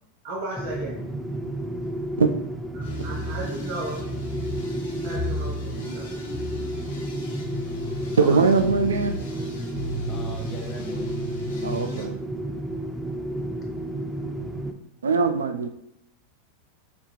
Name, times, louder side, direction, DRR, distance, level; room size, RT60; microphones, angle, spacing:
voice 1, 0.2-1.0 2.7-4.1 5.0-6.1 8.2-8.5 11.9-12.1, right 2 dB, 65° right, -5 dB, 1.4 m, -35 dB
sound 1, 0.6-14.7, right 1 dB, 5° right, 0.4 m, -32 dB
voice 2, 1.5-2.2 6.8-7.8 9.8-11.2, left 2 dB, 40° left, -1 dB, 0.5 m, -46 dB
sound 2, 2.8-12.0, left 2 dB, 90° left, 1.0 m, -35 dB
voice 3, 8.2-9.2 11.6-12.2 15.0-15.7, right 5 dB, 90° right, 8 dB, 0.3 m, -21 dB
5.2 x 2.4 x 3.0 m, 0.77 s
hypercardioid pair, 100°, 0 cm